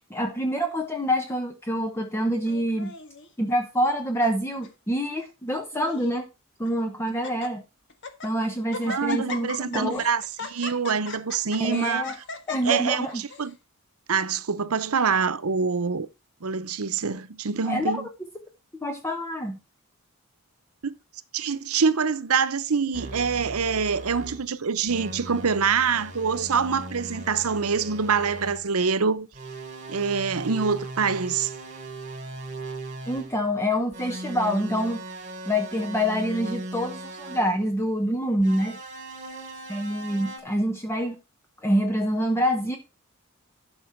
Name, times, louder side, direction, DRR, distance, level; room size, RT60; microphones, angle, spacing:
voice 1, 0.1-2.9 3.4-6.3 6.6-7.6 8.2-10.0 11.6-12.1 12.5-13.2 17.7-18.0 18.8-19.6 33.1-35.0 35.5-38.8 39.7-41.2 41.6-42.8, equal, 10° left, 1.0 m, -26 dB
Laughter, 2.5-3.3 4.0-4.4 4.6-4.7 5.5-6.1 6.6-6.7 7.1-7.5 7.9-8.3 8.7-13.5, left 4 dB, 55° left, 1.6 m, -38 dB
voice 2, 8.9-12.0 12.6-13.6 14.1-16.1 16.4-18.1 20.8-20.9 21.3-29.3 29.9-31.5, right 5 dB, 85° right, 0.8 m, -25 dB
sound 1, 22.9-24.5 24.9-28.7 29.3-33.4 33.9-37.5 38.4-40.4, right 2 dB, 35° right, 3.3 m, -38 dB
12.0 x 6.1 x 4.5 m
head